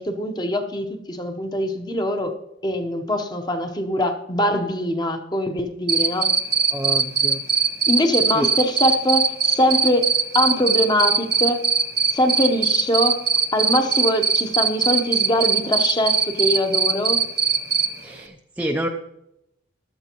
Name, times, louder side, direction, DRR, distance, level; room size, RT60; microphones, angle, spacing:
voice 1, 0.0-2.3 2.6-6.3 7.9-10.1 10.3-11.6 12.1-13.2 13.5-17.2, left 1 dB, 20° left, 6 dB, 0.9 m, -22 dB
Cricket, 5.9-17.9, right 5 dB, 50° right, 1.0 m, -19 dB
voice 2, 6.7-7.4 8.3-8.5 18.0-18.9, equal, 10° right, 3 dB, 0.5 m, -28 dB
15.0 x 11.5 x 3.0 m, 0.87 s
head